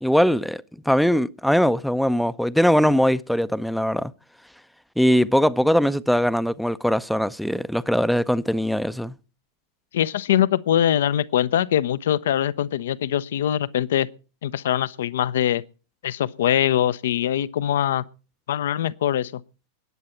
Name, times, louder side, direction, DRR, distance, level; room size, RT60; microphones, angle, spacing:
voice 1, 0.0-4.1 5.0-9.1, equal, ahead, 0.6 m, -21 dB
voice 2, 9.9-14.1 14.4-15.6 16.0-18.0 18.5-19.4, left 10 dB, 60° left, 0.6 m, -22 dB
20.5 x 8.5 x 4.4 m
figure-of-eight pair, 90°, 0 cm